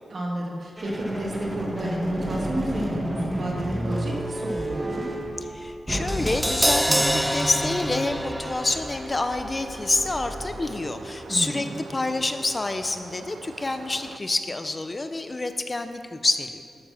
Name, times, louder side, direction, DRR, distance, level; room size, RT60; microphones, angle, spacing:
voice 1, 0.1-5.1 11.3-11.7, right 1 dB, 60° right, -1 dB, 2.4 m, -31 dB
sound 1, 0.8-10.9, right 1 dB, 15° right, 1.8 m, -32 dB
voice 2, 5.5-16.6, left 2 dB, 35° left, 8 dB, 0.7 m, -27 dB
Crash cymbal, 6.1-12.2 12.5-12.6, equal, ahead, 0.4 m, -29 dB
sound 2, 7.7-14.2, right 5 dB, 85° right, 0.5 m, -45 dB
12.5 x 6.9 x 6.0 m, 2.5 s
cardioid pair, 60°, 0 cm